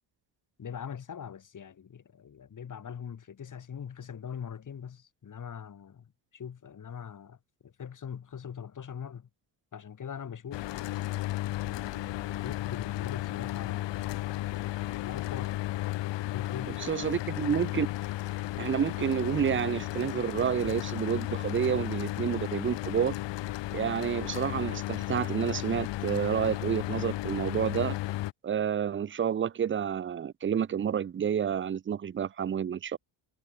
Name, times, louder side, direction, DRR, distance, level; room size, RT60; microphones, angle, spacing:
voice 1, 0.6-7.4 7.6-9.3 9.7-10.7 11.6-14.6 15.0-15.8 16.3-17.2, left 7 dB, 40° left, 2.6 m, -42 dB
Mechanical fan, 10.5-28.3, left 16 dB, 65° left, 1.0 m, -34 dB
voice 2, 16.8-17.9 18.6-23.1 23.7-28.0 28.4-33.0, right 8 dB, 25° right, 0.6 m, -29 dB
cardioid pair, 85°, 48 cm